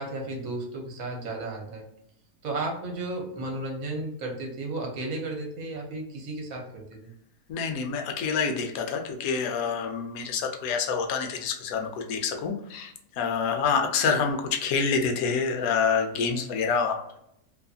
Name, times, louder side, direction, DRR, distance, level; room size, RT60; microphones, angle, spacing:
voice 1, 0.0-1.9 2.4-7.1 10.1-10.3 16.3-16.5, right 2 dB, 65° right, 0 dB, 1.1 m, -34 dB
voice 2, 7.5-17.2, left 5 dB, 70° left, 4 dB, 0.9 m, -27 dB
2.8 x 2.5 x 2.3 m, 0.76 s
omnidirectional pair, 1.7 m